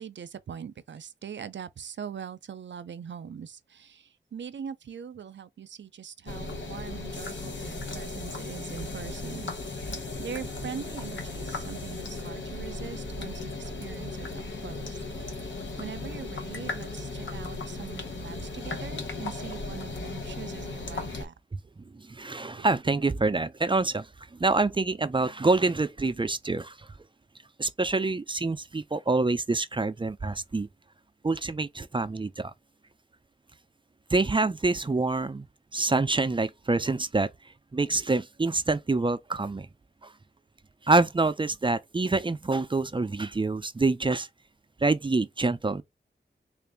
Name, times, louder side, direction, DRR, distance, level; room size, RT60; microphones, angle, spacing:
voice 1, 0.0-21.3 22.6-22.7, right 7 dB, 80° right, 0.5 m, -42 dB
sound 1, 6.3-21.3, left 3 dB, 90° left, 0.9 m, -36 dB
voice 2, 21.9-24.1 24.4-26.8 27.6-30.7 31.2-32.5 34.1-35.5 35.7-37.3 37.7-39.7 40.0-40.1 40.9-44.3 44.8-45.8, right 3 dB, 25° right, 0.4 m, -26 dB
3.8 x 2.5 x 3.4 m
wide cardioid pair, 80°, 19 cm